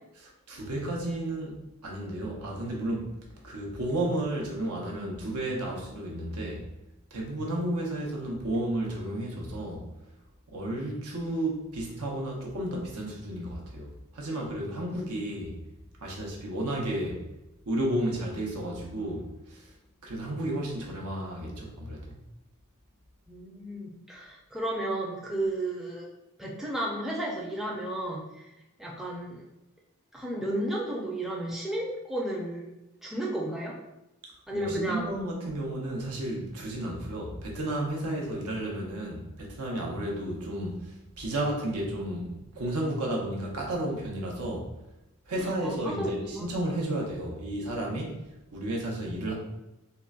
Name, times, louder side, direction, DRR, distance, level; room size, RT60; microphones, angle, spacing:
voice 1, 0.2-1.6 1.8-3.1 3.4-6.6 7.1-9.9 10.5-15.6 16.0-17.2 17.7-19.7 20.0-22.1 34.2-44.7 45.3-49.3, right 1 dB, 90° right, -1 dB, 0.8 m, -32 dB
voice 2, 23.3-26.1 26.4-28.5 28.8-29.4 30.1-32.7 33.0-33.7 34.5-35.1 45.4-46.5, right 1 dB, ahead, -4 dB, 0.4 m, -33 dB
3.7 x 2.1 x 2.3 m, 0.92 s
head